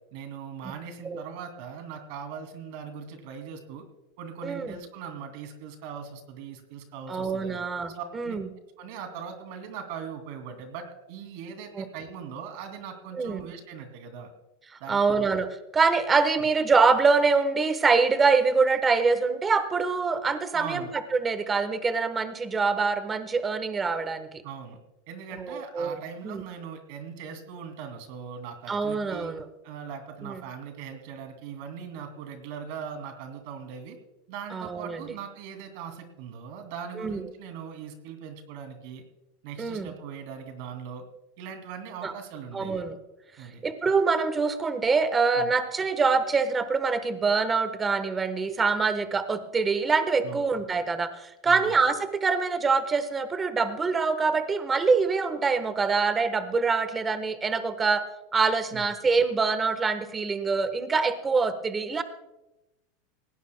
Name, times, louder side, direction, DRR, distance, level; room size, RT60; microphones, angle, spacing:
voice 1, 0.1-3.8 4.2-7.6 7.9-8.4 8.8-14.3 14.8-15.3 20.5-20.9 24.4-24.8 25.1-29.3 29.6-34.0 34.3-39.0 39.4-41.1 41.4-42.8 43.4-43.6 45.4-45.5 50.2-50.4 51.4-51.8 58.7-58.9, right 7 dB, 60° right, 6 dB, 2.5 m, -40 dB
voice 2, 4.4-4.8 7.1-8.5 11.8-11.9 13.1-13.4 14.9-20.8 21.1-24.3 25.3-26.0 26.2-26.4 28.7-29.5 30.2-30.4 34.5-35.0 37.0-37.2 39.6-39.9 42.0-42.1 42.5-43.0 43.6-58.0 58.3-62.0, right 4 dB, 15° right, 11 dB, 1.1 m, -25 dB
19.5 x 17.0 x 2.2 m, 0.97 s
supercardioid pair, 140°, 0 cm